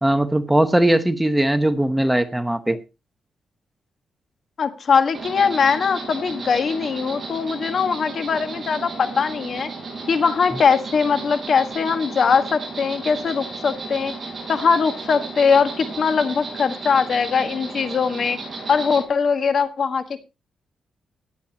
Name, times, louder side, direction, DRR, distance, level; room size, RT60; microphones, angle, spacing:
voice 1, 0.0-2.8, right 1 dB, 5° right, 9 dB, 1.0 m, -19 dB
voice 2, 4.6-9.7 10.1-14.1 14.5-18.4 18.7-20.2, left 5 dB, 50° left, 9 dB, 1.4 m, -21 dB
Insect, 5.1-19.0, right 3 dB, 25° right, 6.9 m, -34 dB
17.0 x 10.0 x 2.9 m, 0.28 s
cardioid pair, 125°, 0 cm